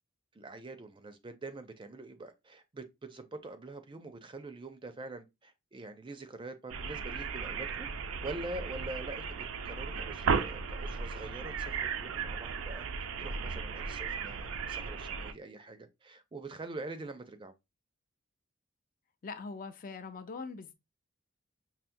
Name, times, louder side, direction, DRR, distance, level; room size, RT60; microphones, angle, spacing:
voice 1, 0.3-7.9 8.2-9.4 9.6-12.8 13.2-17.5, right 2 dB, 25° right, 0.4 m, -44 dB
sound 1, 6.7-15.3, right 5 dB, 90° right, 0.4 m, -36 dB
voice 2, 19.2-20.7, left 4 dB, 45° left, 0.5 m, -42 dB
5.7 x 2.0 x 2.6 m
head